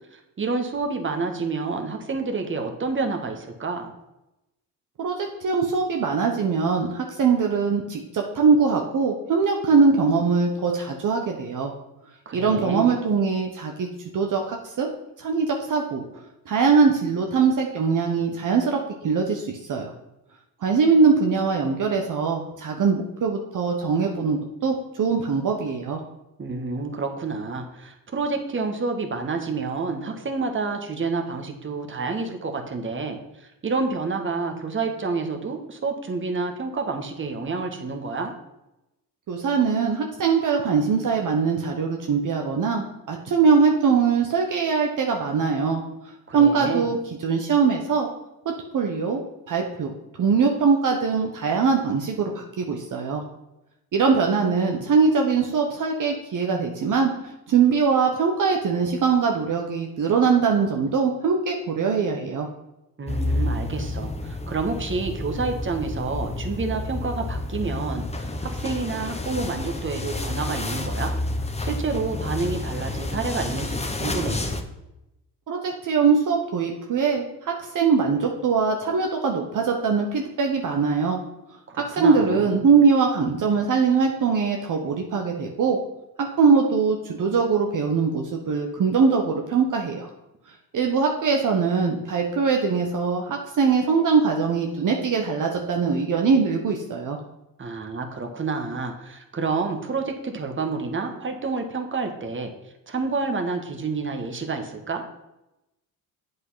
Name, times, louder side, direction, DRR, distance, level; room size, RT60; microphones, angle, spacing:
voice 1, 0.1-3.9 12.2-12.9 26.4-38.3 46.3-46.9 63.0-71.1 71.6-74.7 81.7-82.5 97.6-102.5 102.9-105.2, right 4 dB, 30° right, 4 dB, 1.6 m, -29 dB
voice 2, 5.0-11.7 12.3-13.9 14.1-14.9 15.2-19.9 20.6-26.0 39.3-45.8 46.3-48.1 48.4-49.2 49.5-49.9 50.2-53.2 53.9-62.5 75.5-81.2 81.8-85.8 86.2-90.1 90.7-97.2, right 5 dB, 55° right, 1 dB, 1.2 m, -22 dB
sound 1, 63.1-74.6, left 2 dB, 15° left, 1.0 m, -29 dB
8.0 x 5.7 x 5.7 m, 0.92 s
supercardioid pair, 75°, 38 cm